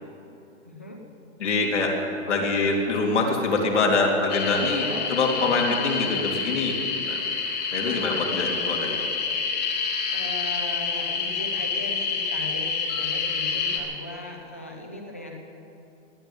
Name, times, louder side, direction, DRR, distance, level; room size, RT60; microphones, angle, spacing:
voice 1, 0.6-1.0 2.3-2.4 4.8-5.6 7.7-8.0 10.1-15.4, left 1 dB, 10° left, 1 dB, 0.4 m, -38 dB
voice 2, 1.4-1.9 2.3-6.7 7.1-7.2 7.7-9.0, left 3 dB, 65° left, 0 dB, 3.4 m, -24 dB
sound 1, 4.3-13.8, left 5 dB, 35° left, 1.8 m, -28 dB
18.5 x 8.1 x 9.6 m, 2.8 s
hypercardioid pair, 180°, 37 cm